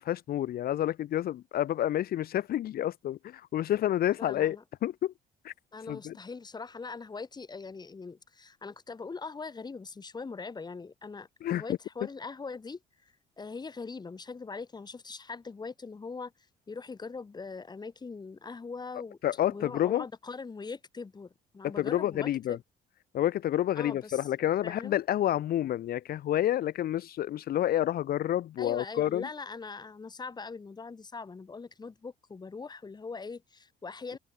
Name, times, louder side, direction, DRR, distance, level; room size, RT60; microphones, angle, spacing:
voice 1, 0.0-4.6 4.8-5.1 5.4-5.5 5.9-6.1 11.4-11.6 19.2-20.0 21.6-22.6 23.1-29.3, left 12 dB, 65° left, 3.0 m, -29 dB
voice 2, 4.2-4.6 5.7-12.8 13.4-16.3 16.7-19.2 19.5-22.6 23.7-24.3 24.6-25.0 28.6-34.2, left 4 dB, 25° left, 6.7 m, -41 dB
cardioid pair, 110°, 17 cm